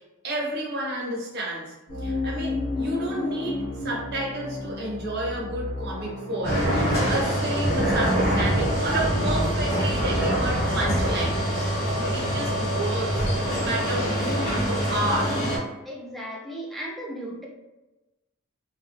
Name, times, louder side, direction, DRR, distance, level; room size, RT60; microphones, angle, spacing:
voice 1, 0.2-1.8 2.0-11.4 11.8-15.4, right 1 dB, 50° right, -3 dB, 0.7 m, -31 dB
sound 1, 1.9-11.8, left 2 dB, 80° left, 1.2 m, -34 dB
sound 2, 6.4-15.6, equal, 50° left, 0.8 m, -24 dB
voice 2, 15.9-17.5, right 1 dB, ahead, -4 dB, 0.4 m, -35 dB
2.2 x 2.0 x 3.1 m, 1.1 s
head